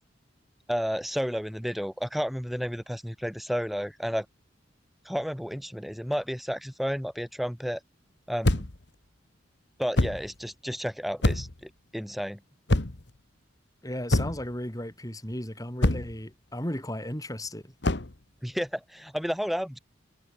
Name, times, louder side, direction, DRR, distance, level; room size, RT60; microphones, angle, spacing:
voice 1, 0.7-4.2 5.0-7.8 8.3-8.7 9.8-12.4 18.4-19.8, equal, ahead, 1.4 m, -31 dB
sound 1, 8.4-8.8 9.9-10.3 11.2-11.6 12.7-13.1 14.1-14.5 15.8-16.2 17.8-18.1, left 1 dB, 60° left, 1.6 m, -25 dB
voice 2, 13.8-17.7, left 1 dB, 20° left, 4.9 m, -35 dB
head